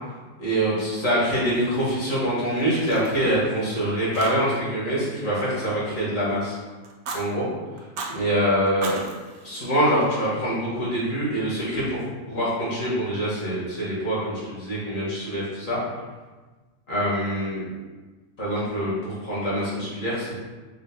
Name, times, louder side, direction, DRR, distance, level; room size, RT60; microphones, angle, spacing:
voice 1, 0.4-6.6 7.1-7.5 8.1-9.0 9.4-12.0 12.3-15.8 16.9-17.7 18.4-20.3, equal, 80° left, -8 dB, 2.0 m, -25 dB
Fire, 1.1-2.2 2.5-3.7 4.1-4.7 5.0-6.4 6.8-7.2 7.8-8.2 8.7-10.2, right 3 dB, 90° right, 1.1 m, -38 dB
5.0 x 2.1 x 4.0 m, 1.3 s
omnidirectional pair, 1.4 m